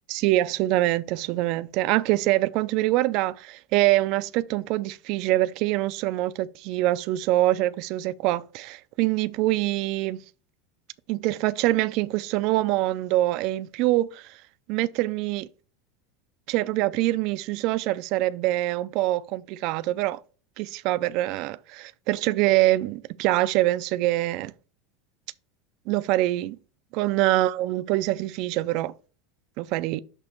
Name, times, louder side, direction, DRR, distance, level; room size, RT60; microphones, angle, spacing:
voice 1, 0.1-10.2 11.1-14.4 14.7-15.5 16.5-20.2 20.6-24.5 25.9-26.6 26.9-28.9 29.6-30.0, right 16 dB, 55° right, 0.4 m, -24 dB
6.2 x 2.9 x 5.3 m
supercardioid pair, 135°, 0 cm